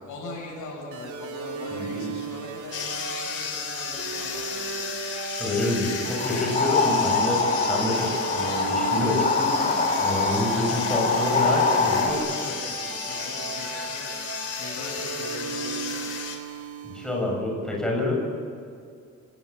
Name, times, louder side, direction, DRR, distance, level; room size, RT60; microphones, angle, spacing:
voice 1, 0.0-5.1 10.5-10.7 11.4-11.9 12.1-14.1 14.5-16.1, left 2 dB, 80° left, -1 dB, 7.8 m, -41 dB
sound 1, 0.9-17.3, right 5 dB, 70° right, 3.3 m, -36 dB
voice 2, 1.7-2.1 5.4-12.2 16.8-18.2, left 1 dB, ahead, -2 dB, 7.5 m, -28 dB
sound 2, 2.7-16.4, left 6 dB, 50° left, 3.7 m, -34 dB
sound 3, 6.2-12.1, left 4 dB, 30° left, 3.3 m, -24 dB
28.5 x 19.5 x 8.8 m, 2.4 s
wide cardioid pair, 180°, 30 cm